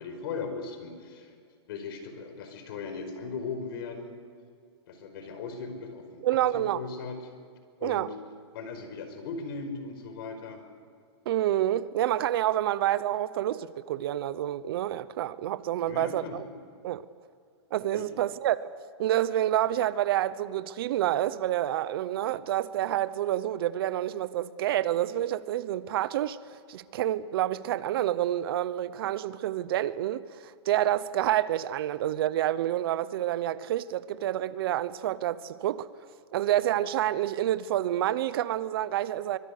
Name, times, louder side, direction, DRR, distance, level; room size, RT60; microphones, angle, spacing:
voice 1, 0.0-1.3 1.7-4.2 4.9-6.2 6.5-7.2 7.8-8.1 8.5-10.6 15.8-16.4 17.9-18.1, left 4 dB, 55° left, 5.0 m, -38 dB
voice 2, 6.2-6.8 7.8-8.1 11.3-16.4 16.8-17.0 17.7-18.7 19.0-26.4 26.7-35.9 36.3-39.4, right 12 dB, 55° right, 0.9 m, -28 dB
24.0 x 23.5 x 6.7 m
hypercardioid pair, 150°, 15 cm